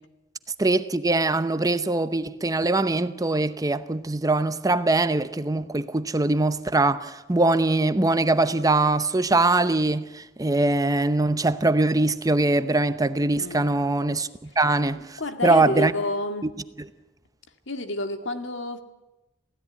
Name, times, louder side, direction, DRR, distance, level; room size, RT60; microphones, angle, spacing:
voice 1, 0.6-14.3 14.6-15.9 16.4-16.5, right 2 dB, 20° right, 0.8 m, -22 dB
voice 2, 15.0-16.5 17.7-18.8, left 1 dB, 75° left, 2.1 m, -29 dB
27.5 x 16.5 x 9.5 m
head